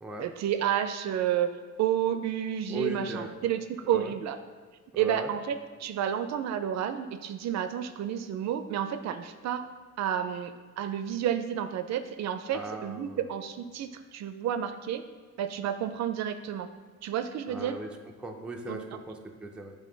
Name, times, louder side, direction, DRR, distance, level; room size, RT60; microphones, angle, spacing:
voice 1, 0.2-4.4 5.0-9.7 10.0-15.0 15.4-16.7 17.0-17.8 18.7-19.0, right 10 dB, 60° right, 10 dB, 0.4 m, -30 dB
voice 2, 2.7-3.5 3.9-4.1 4.9-5.3 12.5-13.2 17.5-17.9 18.2-19.7, right 2 dB, 5° right, 2 dB, 0.4 m, -38 dB
8.4 x 3.6 x 3.8 m, 1.5 s
cardioid pair, 150°, 30 cm